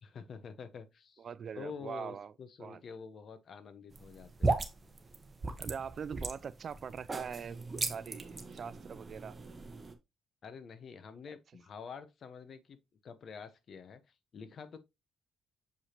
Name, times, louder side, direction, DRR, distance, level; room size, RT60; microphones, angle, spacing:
voice 1, 0.0-1.2 1.5-4.6 10.4-14.8, left 6 dB, 55° left, 1.1 m, -48 dB
voice 2, 1.2-2.3 2.6-2.8 5.6-9.4, right 7 dB, 50° right, 0.4 m, -42 dB
sound 1, 3.9-9.9, right 3 dB, 25° right, 1.2 m, -37 dB
7.2 x 5.0 x 2.9 m
cardioid pair, 90°, 0 cm